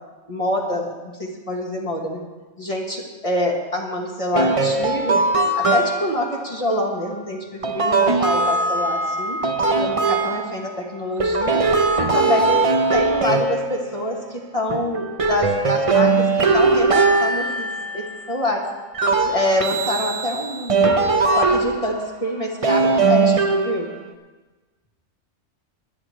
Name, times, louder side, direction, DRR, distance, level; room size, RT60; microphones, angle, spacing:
voice 1, 0.3-2.2 2.6-5.2 5.5-9.4 9.8-11.6 12.0-12.5 12.9-17.7 17.9-18.6 19.2-21.0 21.3-23.9, left 1 dB, 30° left, -2 dB, 1.8 m, -26 dB
sound 1, 4.3-6.3 7.6-10.8 11.2-14.3 14.7-18.3 18.9-22.1 22.6-24.1, right 3 dB, 30° right, 0.8 m, -20 dB
24.0 x 9.8 x 3.2 m, 1.2 s
omnidirectional pair, 1.3 m